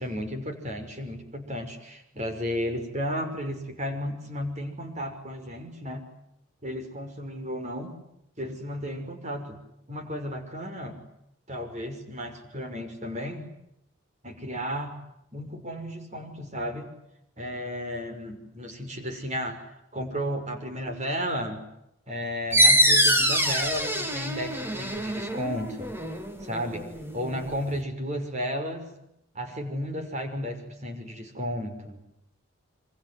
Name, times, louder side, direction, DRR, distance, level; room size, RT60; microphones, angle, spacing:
voice 1, 0.0-6.0 6.6-7.9 8.4-9.6 9.9-11.0 11.5-13.5 14.2-14.9 15.3-16.9 17.4-19.6 19.9-21.6 22.1-25.9 26.4-26.8 27.1-28.9 29.3-32.0, equal, 35° right, 6 dB, 5.9 m, -33 dB
sound 1, 22.5-27.8, equal, 10° right, 2.6 m, -24 dB
28.5 x 26.0 x 7.9 m, 0.81 s
head